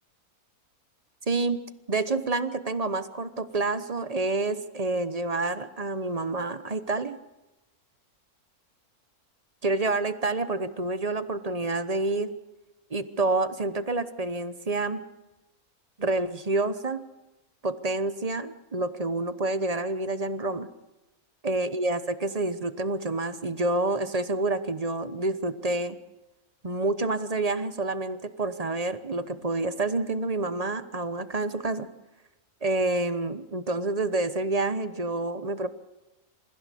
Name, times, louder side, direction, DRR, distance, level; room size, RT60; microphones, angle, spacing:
voice 1, 1.3-1.6 1.9-7.2 9.6-12.3 12.9-15.0 16.0-17.0 17.6-20.7 21.4-26.0 26.6-31.9 32.6-35.7, right 2 dB, 30° right, 12 dB, 1.0 m, -28 dB
27.5 x 15.5 x 8.5 m, 1.0 s
omnidirectional pair, 1.6 m